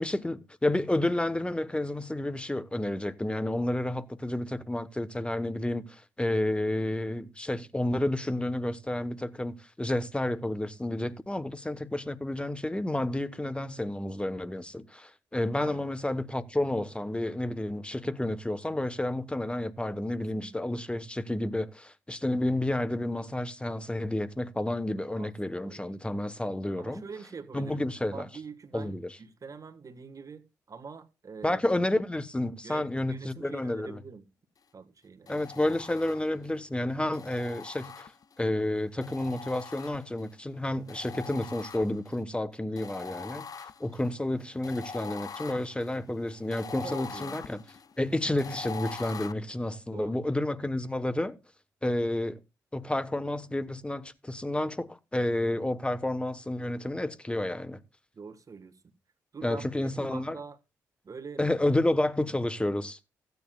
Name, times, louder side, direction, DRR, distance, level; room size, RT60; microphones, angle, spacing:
voice 1, 0.0-27.0 27.5-28.3 28.7-29.2 31.4-34.0 35.3-38.1 38.4-47.6 48.0-51.4 51.8-52.4 52.7-57.8 59.4-60.4 61.4-63.0, left 1 dB, 10° left, 1.2 m, -30 dB
voice 2, 20.3-20.7 25.1-25.8 26.8-31.6 32.6-34.2 34.7-35.5 46.8-47.4 49.9-50.3 58.1-58.7 59.3-60.6 61.0-61.4, right 5 dB, 40° right, 1.6 m, -44 dB
sound 1, 35.3-36.5 37.1-38.5 39.0-40.3 40.9-42.2 42.8-49.3, left 5 dB, 45° left, 0.7 m, -43 dB
15.5 x 9.4 x 2.4 m
hypercardioid pair, 40°, 8 cm